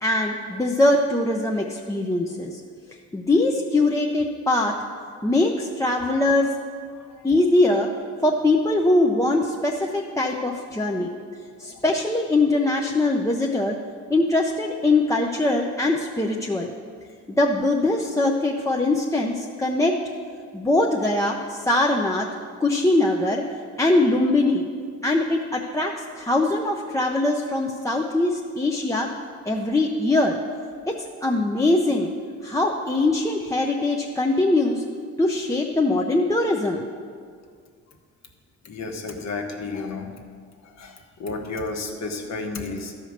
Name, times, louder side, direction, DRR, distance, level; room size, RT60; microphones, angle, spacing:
voice 1, 0.0-2.6 3.1-4.7 5.2-6.5 7.2-7.9 8.2-11.1 11.6-13.8 14.1-16.7 17.4-20.0 20.5-22.3 22.6-23.4 23.8-24.6 25.0-29.1 29.5-30.4 30.9-31.0 31.2-32.1 32.4-34.8 35.2-36.8, left 2 dB, 10° left, -1 dB, 0.6 m, -22 dB
voice 2, 38.6-40.1 40.8-43.0, left 3 dB, 60° left, 3 dB, 1.3 m, -32 dB
12.5 x 5.0 x 6.5 m, 2.1 s
cardioid pair, 90°, 30 cm